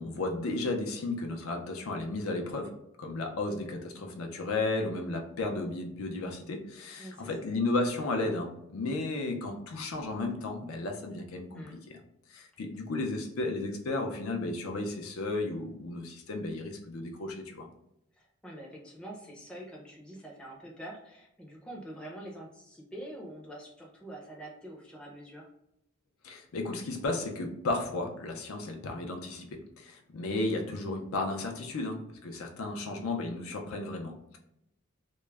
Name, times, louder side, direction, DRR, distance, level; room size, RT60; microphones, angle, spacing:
voice 1, 0.0-2.7 3.0-12.0 12.3-17.7 26.2-34.4, left 2 dB, 80° left, 3 dB, 0.5 m, -34 dB
voice 2, 7.0-7.3 11.5-11.8 18.2-25.5, right 1 dB, 5° left, -3 dB, 0.4 m, -45 dB
2.2 x 2.0 x 3.2 m, 0.80 s
head